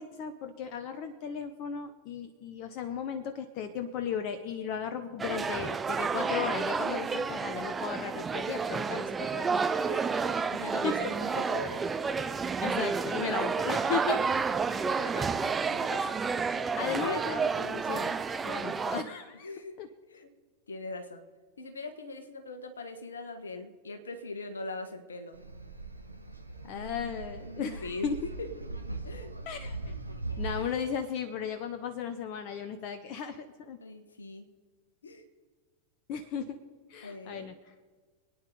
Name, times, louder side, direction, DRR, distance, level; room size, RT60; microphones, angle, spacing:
voice 1, 0.0-9.5 10.8-11.0 12.6-14.2 16.8-18.1 18.4-19.5 19.8-19.9 26.6-28.1 29.5-29.8 30.4-33.8 36.1-36.6 36.9-37.7, left 7 dB, 45° left, 9 dB, 0.9 m, -35 dB
sound 1, 5.2-19.0, right 5 dB, 15° right, 0.6 m, -30 dB
voice 2, 9.7-10.0 10.4-11.8 14.6-16.2 17.0-17.2 19.4-19.8 20.1-20.3 20.7-21.2 21.6-25.4 27.6-28.1 28.4-28.5 29.0-29.3 33.8-34.5 35.0-35.2 37.0-37.5, left 2 dB, 70° left, 8 dB, 1.5 m, -41 dB
sound 2, 25.3-30.7, right 2 dB, 85° right, 1.1 m, -40 dB
26.5 x 9.5 x 4.0 m, 1.5 s
figure-of-eight pair, 90°, 0 cm